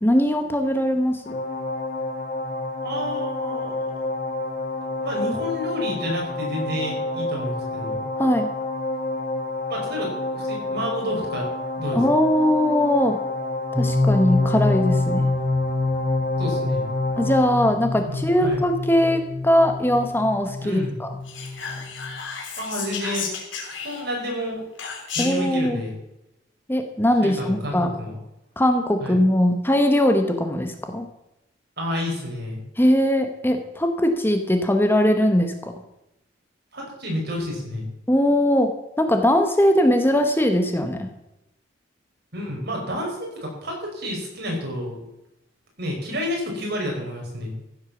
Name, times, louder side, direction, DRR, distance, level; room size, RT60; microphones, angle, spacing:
voice 1, 0.0-1.2 8.2-8.5 11.9-13.2 13.8-15.3 17.2-21.1 25.2-25.8 26.7-27.9 28.6-31.1 32.8-35.7 38.1-41.1, left 1 dB, 10° left, 6 dB, 1.0 m, -20 dB
sound 1, 1.2-17.4, left 2 dB, 50° left, 1.9 m, -29 dB
voice 2, 2.8-3.7 4.9-8.0 9.7-12.1 16.4-16.9 18.0-18.6 20.6-21.0 22.6-23.3 23.7-24.6 25.1-26.0 27.2-28.2 29.0-29.2 31.8-32.6 36.7-37.9 42.3-45.0 45.8-47.5, equal, 60° right, 0 dB, 5.5 m, -30 dB
sound 2, 13.7-22.1, left 2 dB, 5° right, 1.4 m, -26 dB
Whispering, 21.3-24.3 24.8-25.5, left 5 dB, 90° left, 3.4 m, -33 dB
15.0 x 8.1 x 7.0 m, 0.89 s
head